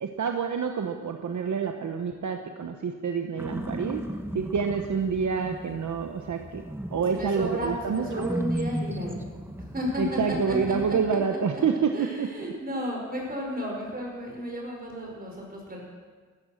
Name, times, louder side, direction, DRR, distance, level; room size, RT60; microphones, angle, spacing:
voice 1, 0.0-4.0 4.3-6.6 6.9-8.3 10.0-11.9 12.2-12.3, right 6 dB, 65° right, 4 dB, 1.0 m, -28 dB
sound 1, 3.4-11.0, equal, 5° right, 1.2 m, -36 dB
voice 2, 6.9-9.2 9.6-15.8, equal, 30° right, -1 dB, 5.4 m, -33 dB
15.0 x 14.0 x 6.5 m, 1.5 s
wide cardioid pair, 105°, 31 cm